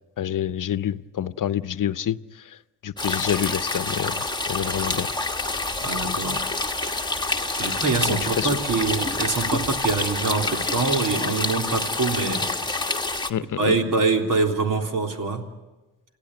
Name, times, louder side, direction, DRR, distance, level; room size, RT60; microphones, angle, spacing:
voice 1, 0.2-2.2 2.4-2.6 2.8-5.1 7.5-7.7 8.1-8.5 13.3-13.8, left 10 dB, 60° left, 14 dB, 0.8 m, -27 dB
sound 1, 3.0-13.3, left 2 dB, 10° left, 1.4 m, -27 dB
sound 2, 4.4-10.9, equal, 30° right, 8.0 m, -40 dB
voice 2, 5.8-6.5 7.6-12.5 13.6-15.5, right 4 dB, 65° right, 2 dB, 3.6 m, -24 dB
28.0 x 16.5 x 9.2 m, 1.1 s
cardioid pair, 65°, 35 cm